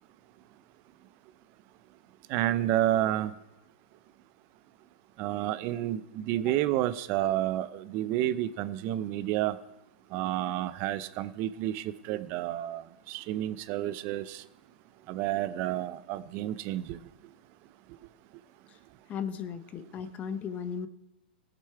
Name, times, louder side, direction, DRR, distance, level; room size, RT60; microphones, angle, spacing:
voice 1, 2.3-3.3 5.2-9.6 10.1-14.4 15.1-17.0, right 13 dB, 35° right, 15 dB, 0.5 m, -30 dB
voice 2, 19.1-20.9, left 7 dB, 25° left, 12 dB, 0.8 m, -36 dB
17.0 x 6.8 x 4.7 m, 0.96 s
hypercardioid pair, 125°, 6 cm